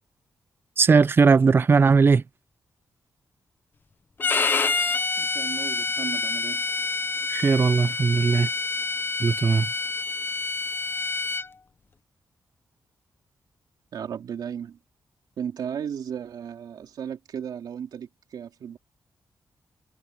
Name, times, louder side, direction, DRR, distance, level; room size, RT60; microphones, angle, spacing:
voice 1, 0.8-2.2 7.3-8.5 9.2-9.7, right 5 dB, 35° right, 0.5 m, -18 dB
Bowed string instrument, 4.2-11.5, left 3 dB, 30° left, 0.5 m, -27 dB
voice 2, 5.2-6.7 13.9-14.8 15.4-18.8, right 8 dB, 75° right, 3.2 m, -35 dB
wide cardioid pair, 170°, 7 cm